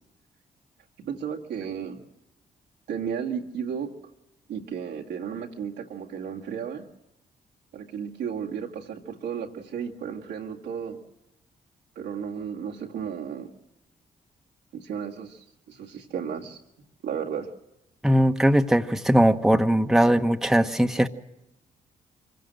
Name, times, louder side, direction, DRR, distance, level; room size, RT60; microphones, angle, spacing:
voice 1, 1.0-2.0 2.9-3.9 4.5-6.9 7.7-11.0 12.0-13.5 14.7-16.6 17.0-17.5, right 7 dB, 85° right, -1 dB, 2.0 m, -34 dB
voice 2, 18.0-21.1, equal, ahead, 6 dB, 1.2 m, -20 dB
24.5 x 16.5 x 7.8 m, 0.90 s
supercardioid pair, 50°, 18 cm